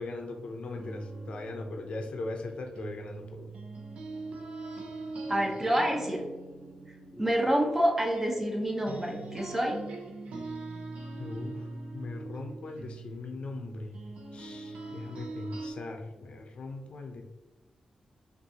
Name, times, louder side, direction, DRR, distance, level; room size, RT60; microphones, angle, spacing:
voice 1, 0.0-3.6 11.2-14.0 14.3-17.2, left 3 dB, 65° left, 3 dB, 0.6 m, -40 dB
sound 1, 0.8-8.6 8.9-15.7, right 3 dB, 75° right, 0.7 m, -42 dB
voice 2, 5.3-6.2 7.1-9.8, right 1 dB, 15° right, 0 dB, 1.0 m, -27 dB
5.3 x 2.6 x 2.8 m, 1.2 s
cardioid pair, 80°, 2 cm